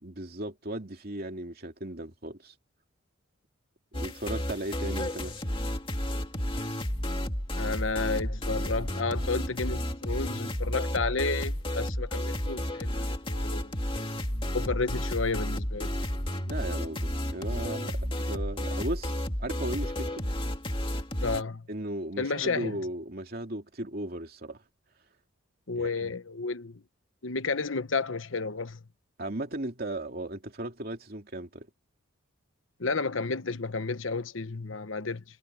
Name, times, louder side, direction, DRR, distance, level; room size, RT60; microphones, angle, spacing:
voice 1, 0.0-2.5 3.9-5.4 16.5-18.0 18.3-19.1 19.4-20.2 21.7-24.6 25.8-26.1 29.2-31.7, right 1 dB, 45° right, 2.9 m, -36 dB
sound 1, 3.9-21.4, left 1 dB, 25° left, 2.4 m, -32 dB
voice 2, 7.6-13.7 14.5-15.9 21.2-21.7 22.2-22.8 25.7-26.8 27.2-28.8 32.8-35.2, left 4 dB, 70° left, 1.1 m, -31 dB
head